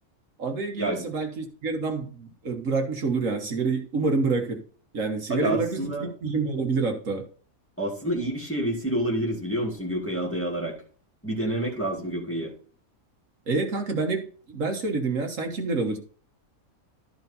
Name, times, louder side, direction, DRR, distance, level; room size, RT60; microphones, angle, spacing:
voice 1, 0.4-4.6 4.9-7.3 13.5-16.0, right 4 dB, 65° right, 3 dB, 1.6 m, -27 dB
voice 2, 5.3-6.1 7.8-10.7 11.2-12.5, right 1 dB, 10° left, -1 dB, 2.2 m, -28 dB
13.0 x 4.4 x 4.1 m, 0.43 s
omnidirectional pair, 1.5 m